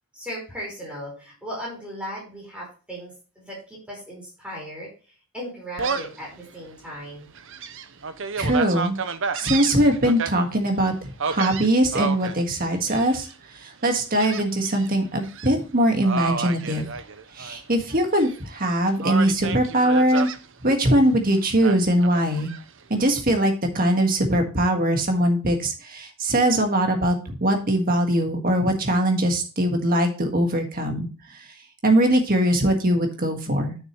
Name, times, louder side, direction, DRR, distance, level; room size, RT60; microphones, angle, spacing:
voice 1, 0.2-4.9 5.3-7.3, equal, 5° right, -4 dB, 4.5 m, -37 dB
Gull seagull, 5.8-6.2 6.7-6.8 7.3-10.3 11.2-12.3 12.9-13.3 14.2-14.9 15.2-15.5 16.0-17.6 17.9-18.6 19.0-20.4 21.6-22.6, right 5 dB, 60° right, 0.7 m, -30 dB
voice 2, 8.4-9.0 9.3-13.3 13.6-16.9 17.3-20.3 20.6-22.5 22.9-31.5 31.8-33.8, right 1 dB, 40° right, 4 dB, 1.6 m, -21 dB
9.3 x 6.6 x 3.0 m, 0.34 s
head